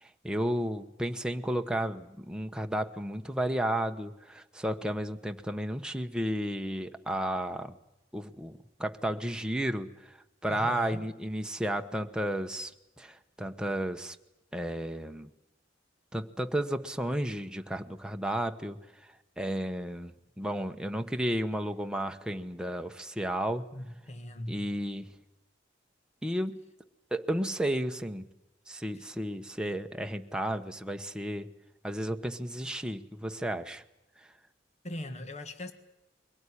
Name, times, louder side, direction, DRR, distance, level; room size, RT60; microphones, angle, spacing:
voice 1, 0.0-7.8 8.1-10.2 10.4-12.7 13.0-14.2 14.5-15.3 16.1-23.7 24.5-25.1 26.2-26.6 27.1-28.2 28.7-31.5 31.8-33.8 34.2-34.3, right 1 dB, 5° right, 5 dB, 1.1 m, -33 dB
voice 2, 10.5-11.1 23.7-24.7 28.9-29.1 34.8-35.7, left 1 dB, 40° left, 8 dB, 1.8 m, -39 dB
23.0 x 17.5 x 9.9 m, 0.94 s
head